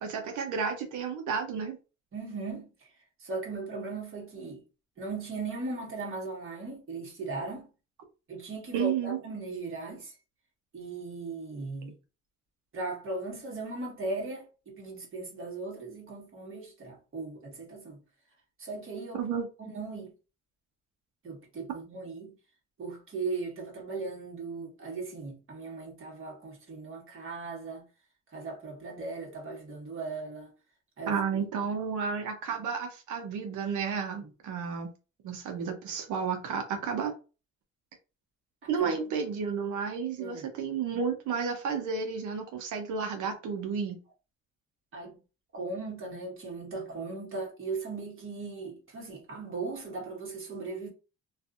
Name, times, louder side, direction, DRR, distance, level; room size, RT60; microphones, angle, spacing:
voice 1, 0.0-1.8 8.7-9.2 19.2-19.5 31.1-34.9 35.2-37.1 38.7-44.0, right 6 dB, 80° right, 0.8 m, -32 dB
voice 2, 2.1-2.7 3.2-4.6 5.0-7.7 8.3-10.1 10.7-11.9 12.7-18.0 18.6-19.3 19.6-20.1 21.2-22.3 22.8-27.8 28.3-30.5 31.0-31.4 38.8-39.0 40.2-40.5 44.9-45.2 45.5-50.9, right 3 dB, 45° right, 1.4 m, -38 dB
2.6 x 2.5 x 2.4 m
cardioid pair, 90°, 30 cm